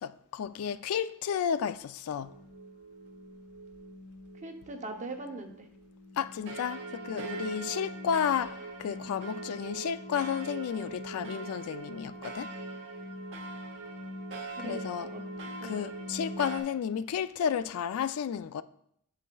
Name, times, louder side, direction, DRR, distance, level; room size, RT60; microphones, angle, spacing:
voice 1, 0.0-2.3 6.2-12.5 14.6-15.1 15.6-18.6, left 8 dB, 70° left, 0.3 m, -32 dB
sound 1, 2.2-16.6, right 2 dB, 60° right, 1.0 m, -42 dB
voice 2, 4.4-5.7 14.6-15.2 15.6-16.0, right 2 dB, 35° right, 0.7 m, -41 dB
8.4 x 7.3 x 2.3 m
head